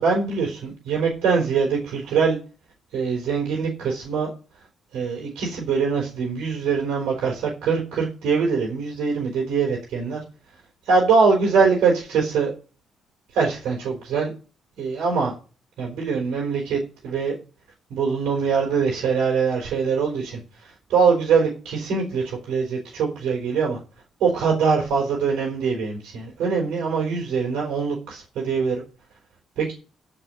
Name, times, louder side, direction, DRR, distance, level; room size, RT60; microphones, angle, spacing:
voice 1, 0.0-2.4 2.9-4.3 4.9-10.2 10.8-12.5 13.3-14.3 14.8-15.3 15.8-17.3 17.9-23.8 24.2-28.8 29.6-29.7, right 5 dB, 75° right, -1 dB, 4.5 m, -23 dB
13.5 x 5.0 x 9.1 m, 0.36 s
supercardioid pair, 70°, 0 cm